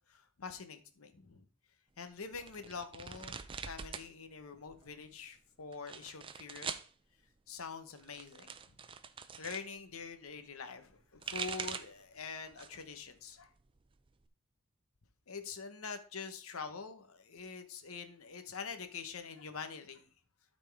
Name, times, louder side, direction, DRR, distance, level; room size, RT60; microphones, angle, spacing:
voice 1, 0.1-1.4 2.0-3.4 3.6-6.7 7.5-8.8 9.4-13.5 15.3-20.1, left 5 dB, 85° left, 0.9 m, -45 dB
sound 1, 2.3-4.1 4.4-5.1 5.7-6.9 7.9-9.7 10.9-12.0 12.5-12.9 13.3-14.3, right 6 dB, 25° right, 0.4 m, -44 dB
12.0 x 4.3 x 3.4 m
head